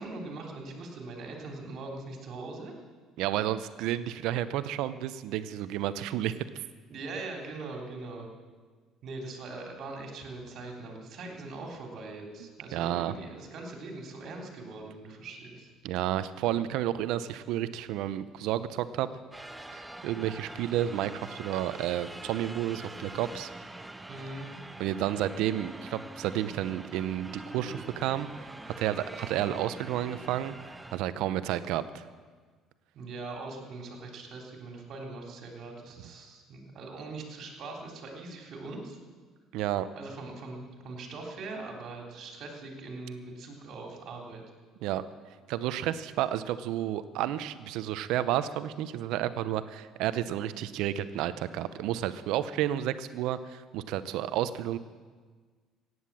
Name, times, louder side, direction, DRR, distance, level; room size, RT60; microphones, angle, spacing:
voice 1, 0.0-2.7 6.9-8.3 9.0-15.7 24.1-24.5 32.9-39.0 39.9-44.4, right 3 dB, 55° right, 1 dB, 3.5 m, -41 dB
voice 2, 3.2-6.3 12.7-13.1 15.8-19.1 19.7-23.5 24.8-28.3 28.6-30.5 30.9-32.0 39.5-39.9 44.8-45.0 45.5-54.8, right 12 dB, 80° right, 14 dB, 0.7 m, -31 dB
sound 1, 19.3-31.0, right 1 dB, 10° right, 0.8 m, -44 dB
15.5 x 9.6 x 7.5 m, 1.5 s
cardioid pair, 105°, 0 cm